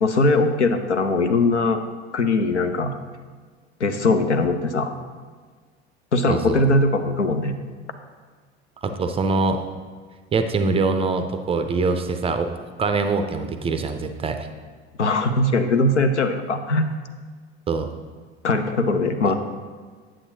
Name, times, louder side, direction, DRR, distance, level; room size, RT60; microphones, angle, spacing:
voice 1, 0.0-1.8 2.1-2.9 3.8-4.9 6.1-7.5 15.0-16.9 18.4-19.3, left 2 dB, 90° left, 8 dB, 0.5 m, -20 dB
voice 2, 6.3-6.6 8.8-9.6 10.3-12.5 12.8-14.5 17.7-17.9 19.2-19.3, right 3 dB, 15° right, 7 dB, 0.4 m, -23 dB
8.3 x 7.3 x 2.7 m, 1.5 s
figure-of-eight pair, 70°, 34 cm